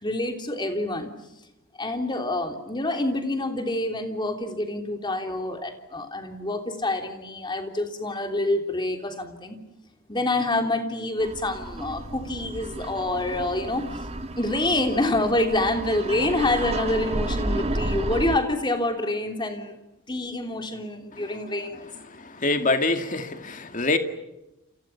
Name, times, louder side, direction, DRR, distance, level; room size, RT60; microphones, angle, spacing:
voice 1, 0.0-1.1 1.8-9.6 10.1-13.9 14.4-19.7 20.1-21.8, left 2 dB, 20° left, 5 dB, 3.3 m, -27 dB
sound 1, 11.2-18.4, right 1 dB, 30° right, 1.6 m, -32 dB
voice 2, 22.2-24.0, left 2 dB, 40° left, 7 dB, 2.3 m, -25 dB
30.0 x 29.5 x 5.9 m, 0.92 s
head